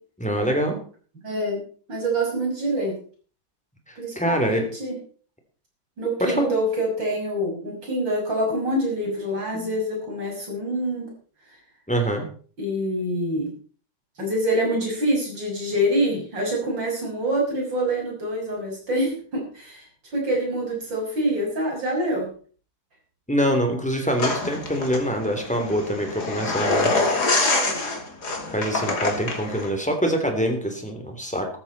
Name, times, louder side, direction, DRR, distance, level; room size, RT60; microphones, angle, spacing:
voice 1, 0.2-0.8 3.9-4.7 6.2-6.5 9.5-9.7 11.9-12.3 23.3-26.9 28.5-31.5, equal, 5° left, 3 dB, 3.2 m, -24 dB
voice 2, 1.2-1.6 1.9-3.0 4.0-4.9 6.0-11.1 12.6-13.5 14.2-19.9 20.1-22.3 27.3-27.8, right 1 dB, 65° right, -1 dB, 6.9 m, -26 dB
sound 1, 24.2-29.7, left 3 dB, 55° left, 3.4 m, -25 dB
13.5 x 13.5 x 4.3 m, 0.42 s
omnidirectional pair, 2.1 m